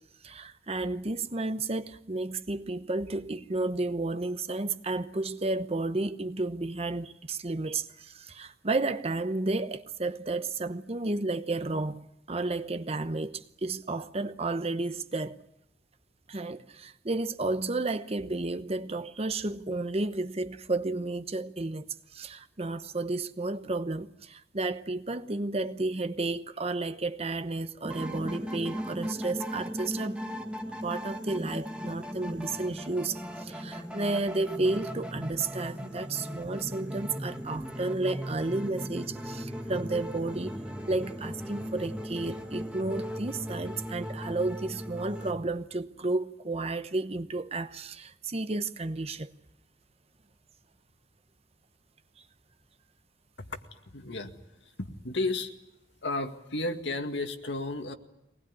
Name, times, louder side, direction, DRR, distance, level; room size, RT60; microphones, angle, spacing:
voice 1, 0.2-15.4 16.3-21.8 22.1-30.3 30.8-40.6 40.9-49.3, right 2 dB, 35° right, 0.9 m, -32 dB
sound 1, 27.8-45.3, equal, 5° right, 1.8 m, -38 dB
voice 2, 53.9-54.3 54.6-55.5 56.0-57.9, left 2 dB, 75° left, 2.0 m, -33 dB
23.0 x 19.5 x 9.7 m
head